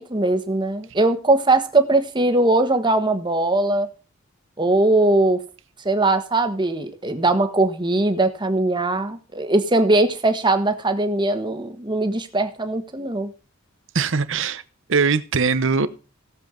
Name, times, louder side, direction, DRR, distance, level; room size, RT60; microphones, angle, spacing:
voice 1, 0.0-3.9 4.6-5.4 5.8-13.3, right 2 dB, 20° right, 8 dB, 1.4 m, -20 dB
voice 2, 13.9-14.6 14.9-15.9, right 5 dB, 65° right, 14 dB, 0.9 m, -21 dB
17.5 x 7.4 x 3.8 m, 0.35 s
head